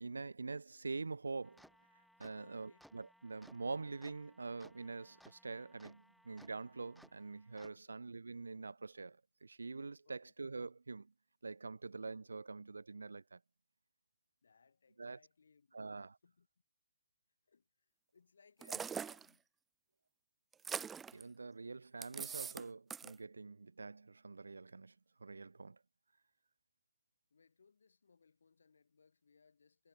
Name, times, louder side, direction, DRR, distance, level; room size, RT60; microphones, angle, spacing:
voice 1, 0.0-1.7 2.2-11.1 11.4-13.4 15.0-15.2 15.7-16.2 18.7-18.8 21.1-24.9 25.2-25.8, right 4 dB, 80° right, 0.4 m, -45 dB
sound 1, 1.4-7.7, equal, ahead, 3.5 m, -65 dB
voice 2, 2.3-2.9 7.7-8.0 10.1-10.3 14.4-15.9 16.2-16.5 17.5-19.5 27.3-29.9, left 5 dB, 75° left, 5.9 m, -69 dB
sound 2, 18.6-19.3 20.5-21.2 22.0-22.6 22.9-23.1, right 7 dB, 15° right, 0.3 m, -42 dB
figure-of-eight pair, 115°, 0 cm